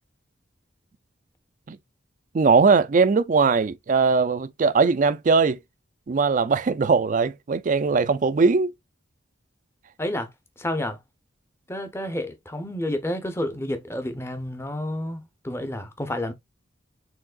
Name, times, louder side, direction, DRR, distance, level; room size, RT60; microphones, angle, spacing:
voice 1, 2.3-5.6 6.1-8.7, right 4 dB, 40° right, 0.4 m, -20 dB
voice 2, 10.6-11.0 11.7-16.3, left 1 dB, 15° left, 0.7 m, -30 dB
4.6 x 3.6 x 2.4 m
head